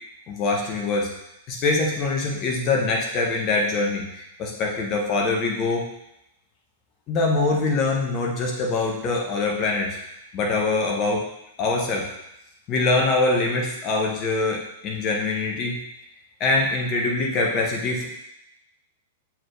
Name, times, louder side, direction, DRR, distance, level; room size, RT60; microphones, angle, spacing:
voice 1, 0.3-1.1 1.5-5.8 7.1-10.0 10.3-11.2 11.6-12.1 12.7-15.8 16.4-18.1, left 3 dB, 35° left, -1 dB, 1.4 m, -23 dB
6.7 x 4.5 x 3.3 m, 0.85 s
figure-of-eight pair, 100°, 0 cm